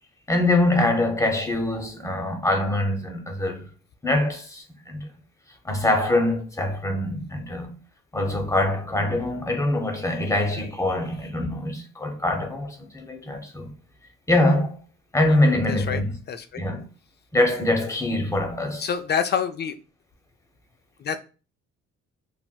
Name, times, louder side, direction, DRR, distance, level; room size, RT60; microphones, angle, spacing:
voice 1, 0.3-3.6 4.0-5.0 5.6-7.7 8.1-13.7 14.3-14.8 15.1-16.1 16.6-16.8 17.3-18.9, left 1 dB, 10° left, 0.8 m, -24 dB
voice 2, 15.3-16.0 16.3-16.6 18.8-19.7 21.0-21.2, left 7 dB, 35° left, 0.4 m, -27 dB
4.2 x 2.1 x 2.2 m
cardioid pair, 90°, 30 cm